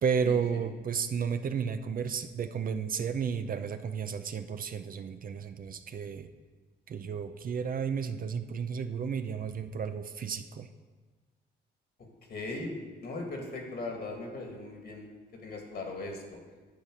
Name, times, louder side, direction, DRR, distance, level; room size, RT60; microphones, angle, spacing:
voice 1, 0.0-6.3 6.9-10.7, right 6 dB, 45° right, 9 dB, 0.6 m, -32 dB
voice 2, 12.3-15.1 15.4-16.4, left 2 dB, 55° left, 1 dB, 2.2 m, -38 dB
10.0 x 4.1 x 7.5 m, 1.3 s
cardioid pair, 90°, 20 cm